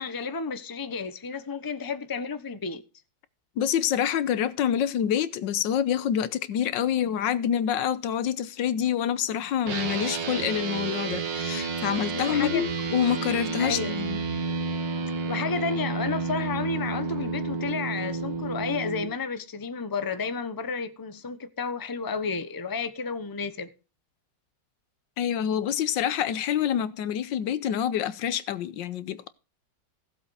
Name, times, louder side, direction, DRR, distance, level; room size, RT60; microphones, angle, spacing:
voice 1, 0.0-2.8 12.1-12.6 13.6-13.9 15.3-23.7, left 5 dB, 15° left, 0.7 m, -32 dB
voice 2, 3.6-14.2 25.2-29.3, left 9 dB, 85° left, 1.5 m, -27 dB
sound 1, 9.7-19.0, right 4 dB, 85° right, 2.2 m, -30 dB
16.0 x 7.6 x 4.7 m
omnidirectional pair, 1.9 m